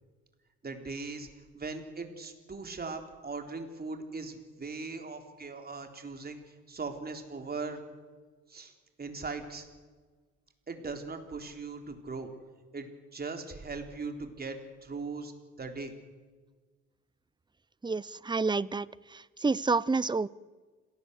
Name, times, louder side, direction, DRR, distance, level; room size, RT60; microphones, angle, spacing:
voice 1, 0.6-1.3 1.5-6.4 6.7-7.8 8.5-8.7 9.0-9.7 10.7-12.3 12.7-15.3 15.6-15.9, right 4 dB, 30° right, 5 dB, 3.8 m, -39 dB
voice 2, 17.8-18.9 19.1-20.3, right 4 dB, 15° right, 21 dB, 0.6 m, -29 dB
27.0 x 18.0 x 8.1 m, 1.4 s
cardioid pair, 90°, 30 cm